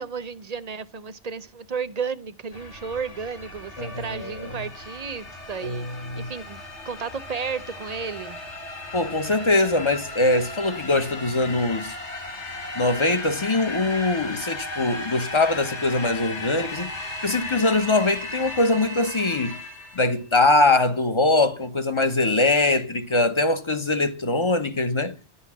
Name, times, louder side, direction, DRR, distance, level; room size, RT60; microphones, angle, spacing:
voice 1, 0.0-5.9 6.2-6.6 6.8-8.4, right 5 dB, 40° right, 0.8 m, -33 dB
sound 1, 2.5-20.2, left 2 dB, 75° left, 2.2 m, -36 dB
voice 2, 3.8-4.5 5.6-6.3 8.9-12.0 12.7-17.0 17.2-19.6 19.9-25.2, left 2 dB, 25° left, 1.0 m, -22 dB
12.0 x 5.6 x 8.4 m
omnidirectional pair, 1.2 m